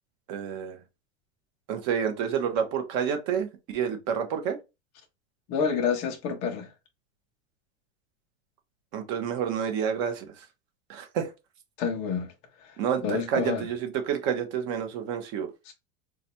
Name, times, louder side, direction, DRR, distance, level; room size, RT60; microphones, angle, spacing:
voice 1, 0.3-0.8 1.7-4.6 8.9-10.4 10.9-11.3 12.8-15.5, right 8 dB, 35° right, 0.8 m, -29 dB
voice 2, 5.5-6.7 11.8-12.3 12.6-12.8 13.0-13.7 15.7-15.8, left 6 dB, 20° left, 0.3 m, -28 dB
3.9 x 2.2 x 2.8 m
supercardioid pair, 160°, 40 cm